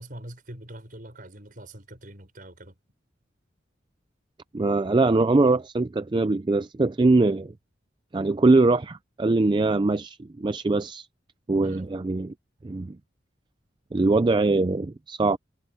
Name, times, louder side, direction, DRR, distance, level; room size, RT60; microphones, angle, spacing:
voice 1, 0.0-2.7 11.6-11.8, right 1 dB, 45° right, 6.0 m, -43 dB
voice 2, 4.5-7.5 8.1-11.1 11.5-12.3 12.6-13.0 13.9-15.4, right 3 dB, 25° right, 0.4 m, -22 dB
head